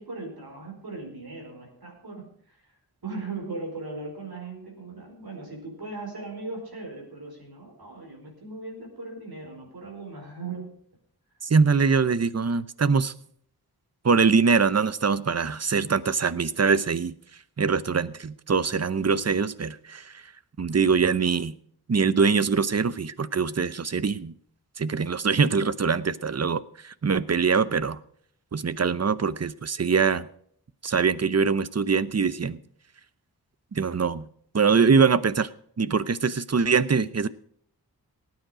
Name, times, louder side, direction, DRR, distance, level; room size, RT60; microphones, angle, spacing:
voice 1, 0.0-2.8 3.0-10.8, right 3 dB, 70° right, 1 dB, 4.8 m, -38 dB
voice 2, 11.4-13.1 14.0-17.1 17.6-20.2 20.6-21.5 21.9-24.3 24.8-28.0 28.5-30.3 30.8-32.6 33.7-34.3 34.5-35.5 35.8-37.3, right 5 dB, 40° right, 16 dB, 0.8 m, -23 dB
17.5 x 9.4 x 5.0 m, 0.62 s
wide cardioid pair, 75°, 38 cm